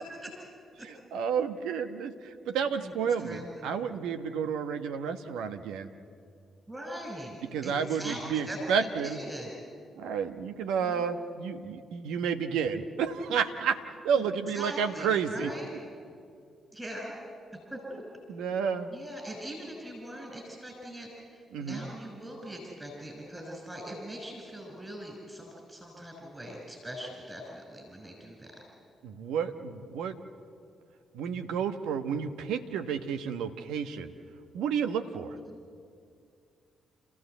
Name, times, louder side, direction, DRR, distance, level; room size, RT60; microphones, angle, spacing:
voice 1, 0.8-5.9 7.5-9.2 10.0-13.8 14.0-15.5 18.3-18.9 21.5-21.8 29.0-30.1 31.1-34.1 34.5-35.3, right 7 dB, 75° right, 8 dB, 1.1 m, -31 dB
voice 2, 3.2-3.7 6.7-9.5 10.8-11.1 14.1-15.7 16.7-17.1 17.7-18.0 18.9-28.6 35.5-35.6, equal, 15° right, 0 dB, 5.9 m, -42 dB
29.5 x 15.0 x 8.0 m, 2.4 s
hypercardioid pair, 40°, 0 cm